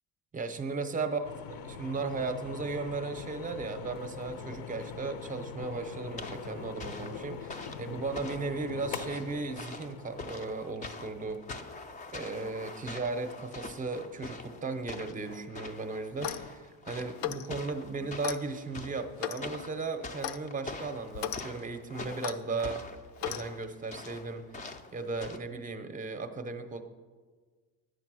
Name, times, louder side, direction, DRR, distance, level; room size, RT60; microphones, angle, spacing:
voice 1, 0.3-11.4 12.1-22.8 23.2-24.4 24.9-26.8, right 3 dB, 20° right, 8 dB, 0.6 m, -36 dB
sound 1, 1.2-12.4, left 6 dB, 90° left, 0.9 m, -43 dB
sound 2, 6.2-25.4, left 3 dB, 20° left, 0.4 m, -45 dB
Clock, 16.1-16.5 17.2-17.5 18.2-18.4 19.2-19.5 20.2-20.4 21.1-21.4 22.2-22.4 23.2-23.4, left 12 dB, 65° left, 0.6 m, -35 dB
11.0 x 8.0 x 6.1 m, 1.5 s
cardioid pair, 175°, 39 cm